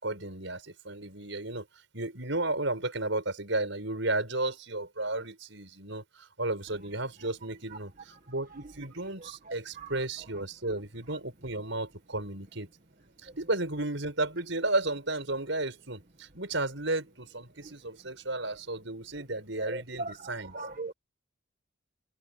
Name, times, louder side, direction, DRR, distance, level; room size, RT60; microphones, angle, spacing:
voice 1, 0.0-1.7 1.9-12.7 13.2-20.5, right 2 dB, 65° right, 7.8 m, -33 dB
voice 2, 9.2-10.0 10.7-10.8 17.6-17.7 19.6-20.9, right 2 dB, 45° right, 1.8 m, -40 dB
head